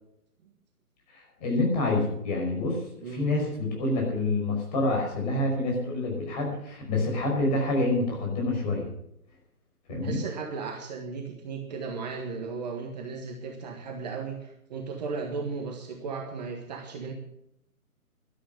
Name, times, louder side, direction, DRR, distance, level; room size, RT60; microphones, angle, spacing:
voice 1, 1.1-8.9 9.9-10.2, left 2 dB, 25° left, 0 dB, 5.3 m, -27 dB
voice 2, 9.9-17.1, right 4 dB, 30° right, 2 dB, 1.6 m, -36 dB
12.5 x 12.0 x 6.4 m, 0.80 s
figure-of-eight pair, 145°, 44 cm